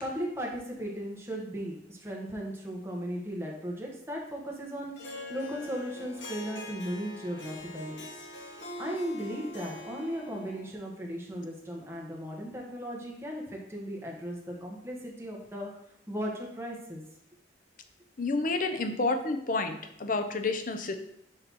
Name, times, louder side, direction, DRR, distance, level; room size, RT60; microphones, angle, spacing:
voice 1, 0.0-8.3 8.8-15.7 16.1-17.0, equal, 15° right, -2 dB, 1.1 m, -37 dB
Harp, 5.0-10.8, left 1 dB, 80° left, 1.1 m, -43 dB
voice 2, 18.2-21.0, left 3 dB, 45° left, 7 dB, 0.6 m, -29 dB
6.6 x 2.9 x 5.4 m, 0.75 s
head